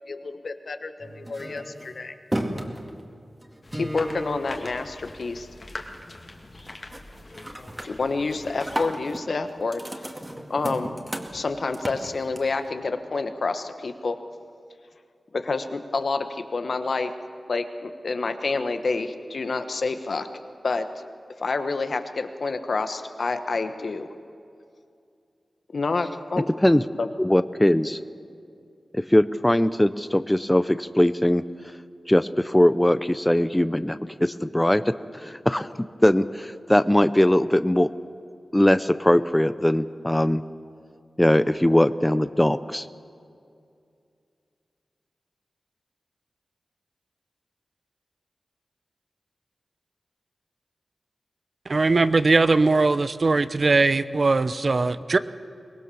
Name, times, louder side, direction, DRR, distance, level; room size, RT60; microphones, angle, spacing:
voice 1, 0.1-2.1 3.7-5.5 7.8-10.0 10.5-10.9 11.3-14.2 15.3-17.1 17.5-20.3 20.6-21.0 21.4-24.1 25.7-26.4 27.0-27.1, left 3 dB, 65° left, 8 dB, 1.3 m, -28 dB
sound 1, 1.0-5.5 5.8-6.3 6.6-7.0 7.3-12.7, right 1 dB, 20° right, 2.2 m, -35 dB
sound 2, 3.6-8.9, left 2 dB, 40° left, 2.1 m, -43 dB
voice 2, 27.2-28.0 28.9-31.4 32.1-37.9 38.5-40.4 41.2-42.9, left 1 dB, 10° left, 13 dB, 0.6 m, -21 dB
voice 3, 51.7-55.2, right 3 dB, 55° right, 13 dB, 0.7 m, -20 dB
23.5 x 19.5 x 7.2 m, 2.4 s
wide cardioid pair, 80°, 0 cm